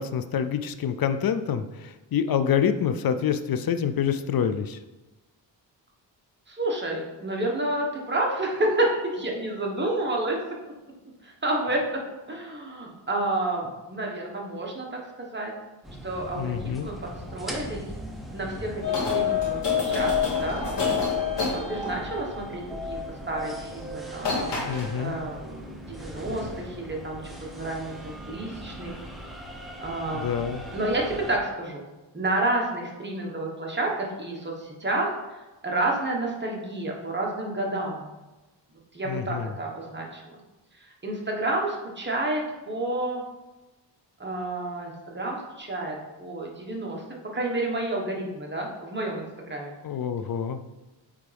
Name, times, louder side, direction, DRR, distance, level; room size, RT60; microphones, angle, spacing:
voice 1, 0.0-4.8 16.4-16.9 24.6-25.2 30.1-30.6 39.1-39.5 49.8-50.6, left 8 dB, 55° left, 11 dB, 0.5 m, -27 dB
voice 2, 6.5-10.4 11.2-12.0 12.3-15.5 16.0-17.8 18.3-20.7 21.4-23.0 23.3-29.0 29.8-30.3 30.7-31.8 32.1-38.1 38.9-40.2 40.8-43.2 44.2-49.7, right 2 dB, 25° right, -1 dB, 1.3 m, -30 dB
sound 1, 15.8-31.4, equal, ahead, 0.9 m, -39 dB
sound 2, 18.8-22.2 23.8-23.9 24.2-24.9, left 6 dB, 70° left, 2.0 m, -26 dB
8.3 x 3.6 x 3.4 m, 1.1 s
cardioid pair, 90°, 45 cm